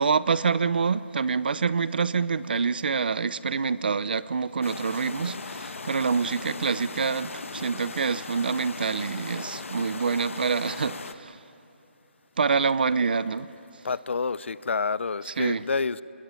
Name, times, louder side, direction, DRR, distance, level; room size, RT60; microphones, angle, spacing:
voice 1, 0.0-11.4 12.4-13.5 15.3-15.7, right 5 dB, 45° right, 0.6 m, -26 dB
sound 1, 4.6-11.1, left 3 dB, 85° left, 1.5 m, -38 dB
voice 2, 13.8-16.0, left 4 dB, 65° left, 0.7 m, -28 dB
27.5 x 21.0 x 9.0 m
hypercardioid pair, 175°, 7 cm